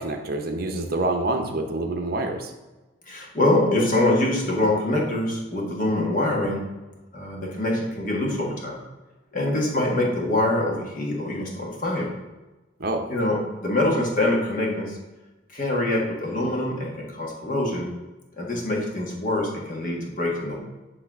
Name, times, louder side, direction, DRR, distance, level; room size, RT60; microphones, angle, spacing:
voice 1, 0.0-2.5 12.8-13.1, right 2 dB, 50° right, 4 dB, 0.7 m, -27 dB
voice 2, 3.1-6.6 7.1-8.8 9.3-12.1 13.1-15.0 15.5-17.9 18.4-20.6, left 1 dB, 45° left, -2 dB, 1.6 m, -24 dB
8.4 x 3.3 x 6.0 m, 1.1 s
head